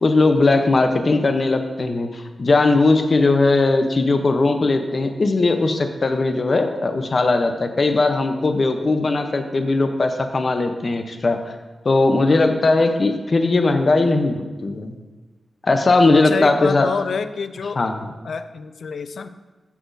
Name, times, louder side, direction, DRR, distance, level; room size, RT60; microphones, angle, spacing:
voice 1, 0.0-11.5 11.8-14.9 15.6-16.9 17.8-17.9, left 3 dB, 45° left, 6 dB, 0.8 m, -19 dB
voice 2, 16.1-17.8 18.2-19.3, left 5 dB, 70° left, 11 dB, 0.4 m, -27 dB
14.0 x 6.0 x 2.7 m, 1.2 s
wide cardioid pair, 90°, 0 cm